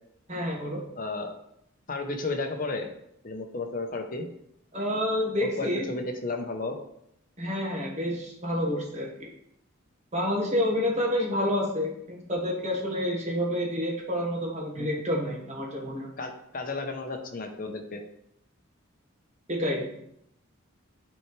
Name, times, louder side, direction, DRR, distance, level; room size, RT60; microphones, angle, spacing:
voice 1, 0.3-0.8 4.7-5.9 7.4-9.3 10.1-16.1 19.5-19.9, left 1 dB, 35° right, -2 dB, 1.5 m, -29 dB
voice 2, 1.0-1.3 1.9-2.9 3.2-4.3 5.4-6.7 14.8-14.9 16.2-18.0, left 3 dB, 40° left, 4 dB, 0.9 m, -33 dB
9.6 x 4.5 x 3.3 m, 0.76 s
head